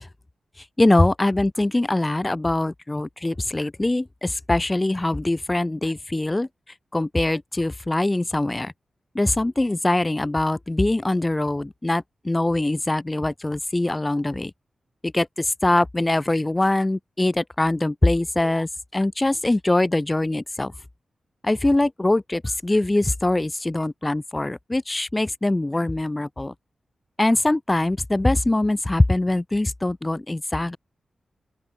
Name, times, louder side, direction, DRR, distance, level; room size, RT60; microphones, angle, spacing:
voice 1, 0.8-6.5 6.9-8.7 9.2-14.5 15.0-20.7 21.4-26.5 27.2-30.8, left 2 dB, 15° left, 7.1 m, -23 dB
open air
wide cardioid pair, 105°, 0 cm